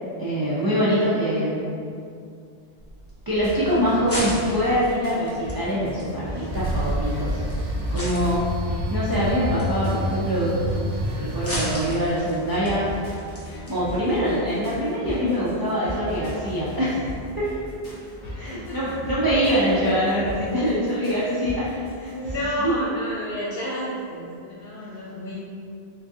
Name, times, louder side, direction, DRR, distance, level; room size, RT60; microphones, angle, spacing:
voice 1, 0.2-1.7 3.3-8.5 8.9-10.6 11.2-12.9 13.7-17.1 17.4-17.5 18.3-21.7 22.0-22.1 22.6-22.7, equal, 35° right, -9 dB, 0.3 m, -24 dB
sound 1, 2.8-13.8, equal, 15° left, 0.7 m, -37 dB
sound 2, 3.4-22.3, equal, 90° left, 1.3 m, -37 dB
sound 3, 6.5-11.9, equal, 80° right, 0.8 m, -28 dB
voice 2, 18.2-19.0 19.3-20.0 21.7-25.4, equal, 70° left, -8 dB, 0.7 m, -32 dB
3.8 x 2.3 x 2.6 m, 2.4 s
omnidirectional pair, 1.1 m